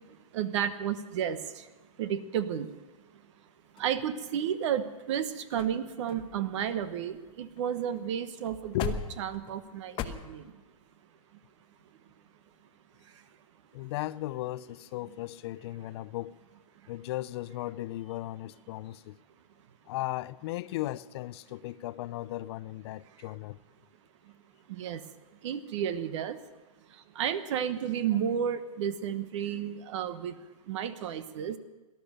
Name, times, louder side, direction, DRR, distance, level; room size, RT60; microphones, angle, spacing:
voice 1, 0.3-1.6 2.0-2.7 3.8-10.5 24.7-25.0 25.4-26.4 27.1-30.4 30.7-31.6, right 9 dB, 55° right, 1.1 m, -32 dB
sound 1, 3.8-4.6 5.2-5.3 5.5-5.8 6.1-7.7 7.9-8.1 8.4-10.1, left 9 dB, 30° left, 1.0 m, -39 dB
voice 2, 13.7-16.4 16.9-19.2 19.9-23.6, left 16 dB, 50° left, 0.5 m, -36 dB
18.0 x 12.0 x 6.6 m
hypercardioid pair, 135°, 18 cm